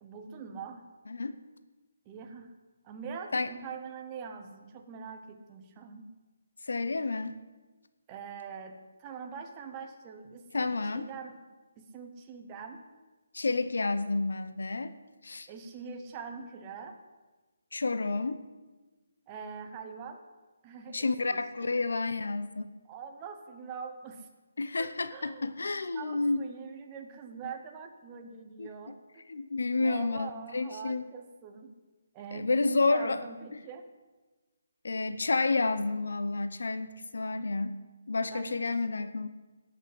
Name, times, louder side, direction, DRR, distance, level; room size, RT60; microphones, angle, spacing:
voice 1, 0.0-0.9 2.1-2.5 2.8-6.1 8.1-11.4 11.8-12.8 15.5-17.0 19.3-20.2 20.6-21.7 22.8-24.3 24.6-25.5 25.9-29.3 29.8-31.8 32.1-33.9 38.3-38.6, right 6 dB, 15° right, 4 dB, 0.8 m, -43 dB
voice 2, 1.1-1.4 3.3-3.5 6.6-7.4 10.5-11.1 13.3-14.9 15.2-15.5 17.7-18.4 20.9-22.7 24.6-26.5 28.6-28.7 29.3-31.0 32.3-33.2 34.8-37.8 38.1-39.3, left 3 dB, 75° left, 11 dB, 0.8 m, -30 dB
17.0 x 6.5 x 7.6 m, 1.2 s
hypercardioid pair, 180°, 0 cm